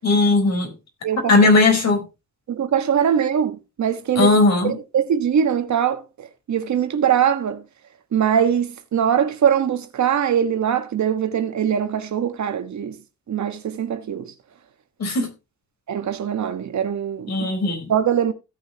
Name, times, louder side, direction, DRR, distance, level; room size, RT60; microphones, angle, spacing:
voice 1, 0.0-0.7 1.3-2.0 4.2-4.7 15.0-15.3 17.3-17.9, left 3 dB, 60° left, 4.3 m, -17 dB
voice 2, 1.0-1.3 2.5-4.3 4.6-7.6 8.1-13.0 13.3-14.3 15.9-17.5 17.9-18.3, right 8 dB, 70° right, 1.5 m, -22 dB
16.5 x 6.4 x 2.9 m
cardioid pair, 70°, 30 cm